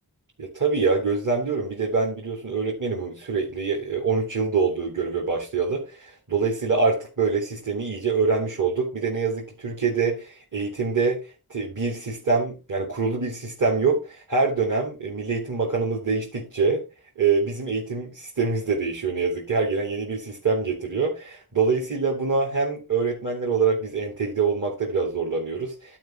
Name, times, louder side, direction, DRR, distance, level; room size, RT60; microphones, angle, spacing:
voice 1, 0.4-16.8 17.2-26.0, right 4 dB, 55° right, -2 dB, 2.6 m, -25 dB
11.5 x 4.8 x 4.4 m, 0.30 s
wide cardioid pair, 60°, 38 cm